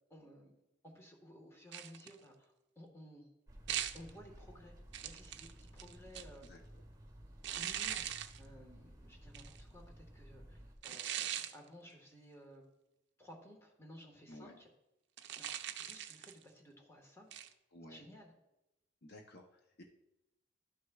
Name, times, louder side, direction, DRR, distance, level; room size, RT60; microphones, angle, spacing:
voice 1, 0.1-0.5 0.8-3.3 3.9-4.8 5.0-6.4 7.5-12.7 13.2-14.7 15.4-15.5 15.8-17.3 17.9-18.3, equal, 15° left, 0 dB, 1.4 m, -56 dB
sound 1, 1.7-2.2 3.7-4.1 4.9-6.5 7.4-8.4 9.3-9.6 10.8-11.5 15.2-16.4 17.3-17.5, right 10 dB, 60° right, 0.5 m, -41 dB
sound 2, 3.5-10.8, equal, 15° right, 1.5 m, -56 dB
voice 2, 17.7-18.1 19.0-19.8, left 1 dB, 55° left, 2 dB, 0.7 m, -54 dB
12.0 x 6.3 x 2.3 m, 0.91 s
head